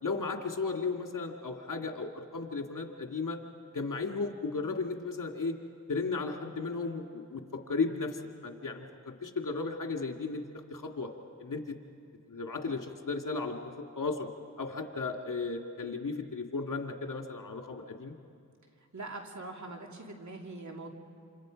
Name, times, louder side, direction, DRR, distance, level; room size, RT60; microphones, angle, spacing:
voice 1, 0.0-3.4 3.7-5.5 5.9-11.1 11.4-11.8 12.3-14.3 14.6-18.1, left 4 dB, 65° left, 3 dB, 2.2 m, -35 dB
voice 2, 18.9-20.9, right 2 dB, 60° right, 2 dB, 2.9 m, -42 dB
28.5 x 27.0 x 5.2 m, 2.4 s
cardioid pair, 50°, 33 cm